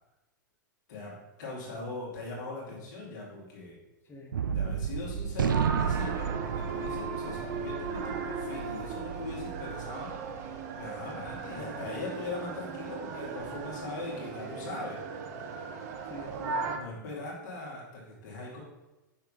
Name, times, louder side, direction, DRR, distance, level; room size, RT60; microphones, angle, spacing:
voice 1, 1.4-3.8 4.5-10.1 10.8-15.0 16.7-18.6, left 3 dB, 60° left, -4 dB, 2.5 m, -40 dB
voice 2, 4.0-4.4 11.5-12.3 14.1-14.7 16.0-16.8, left 1 dB, 20° left, 0 dB, 1.4 m, -47 dB
Gunshot gunfire, 4.3-10.9, right 7 dB, 80° right, 0.5 m, -33 dB
sound 1, 5.5-16.8, right 5 dB, 50° right, 0.8 m, -37 dB
5.9 x 4.6 x 5.0 m, 1.0 s
hypercardioid pair, 100°, 11 cm